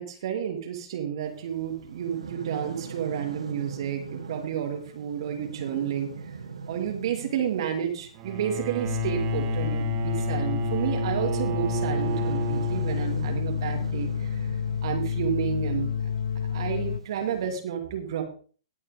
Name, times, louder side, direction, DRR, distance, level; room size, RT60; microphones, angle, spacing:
voice 1, 0.0-6.1 6.7-14.3 14.8-15.9 16.5-18.2, right 9 dB, 55° right, 3 dB, 2.6 m, -31 dB
sound 1, 1.2-17.6, right 5 dB, 80° right, 2.1 m, -42 dB
Bowed string instrument, 8.2-13.4, right 8 dB, 35° right, 1.2 m, -33 dB
sound 2, 8.8-17.0, left 8 dB, 65° left, 0.6 m, -29 dB
19.0 x 6.5 x 3.6 m, 0.40 s
hypercardioid pair, 125°, 3 cm